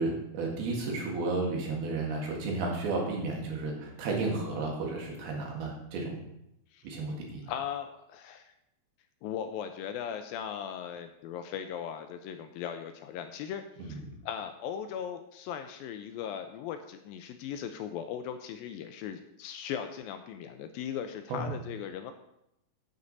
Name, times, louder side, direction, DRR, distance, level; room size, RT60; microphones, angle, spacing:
voice 1, 0.0-6.2 6.8-7.5 13.8-14.2 21.3-21.5, right 3 dB, 75° right, -1 dB, 3.9 m, -33 dB
voice 2, 7.5-8.5 9.2-14.0 14.3-22.1, left 8 dB, 85° left, 7 dB, 2.1 m, -38 dB
9.2 x 8.4 x 4.0 m, 0.81 s
omnidirectional pair, 4.6 m